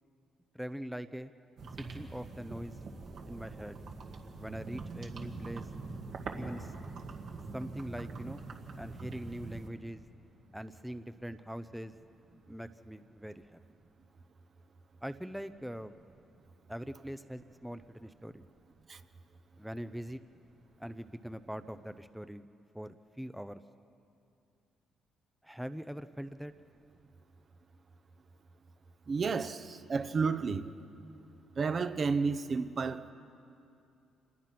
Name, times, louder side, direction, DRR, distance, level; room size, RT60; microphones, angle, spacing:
voice 1, 0.5-1.3 1.9-2.7 3.3-3.8 4.4-5.7 6.4-6.7 7.5-8.4 8.8-10.0 10.5-11.9 12.5-13.6 15.0-15.9 16.7-18.4 19.6-20.2 20.8-22.4 22.7-23.6 25.4-26.5, equal, 5° right, 0.7 m, -42 dB
sound 1, 1.6-9.7, right 3 dB, 65° right, 2.1 m, -43 dB
voice 2, 29.1-30.7 31.6-33.1, right 4 dB, 45° right, 0.9 m, -31 dB
27.0 x 20.5 x 6.0 m
cardioid pair, 80°, 0 cm